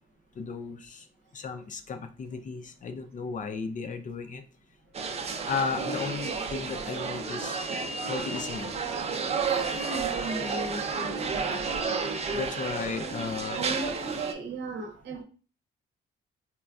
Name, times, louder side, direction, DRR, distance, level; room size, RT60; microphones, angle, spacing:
voice 1, 0.4-1.1 1.3-4.4 5.5-7.6 8.0-8.8 12.3-13.6, left 5 dB, 40° left, 7 dB, 0.4 m, -34 dB
sound 1, 4.9-14.3, right 5 dB, 30° right, 0.4 m, -31 dB
voice 2, 9.7-11.6 13.5-15.2, right 3 dB, 65° right, 4 dB, 0.8 m, -36 dB
4.1 x 2.3 x 2.3 m, 0.38 s
cardioid pair, 90°, 20 cm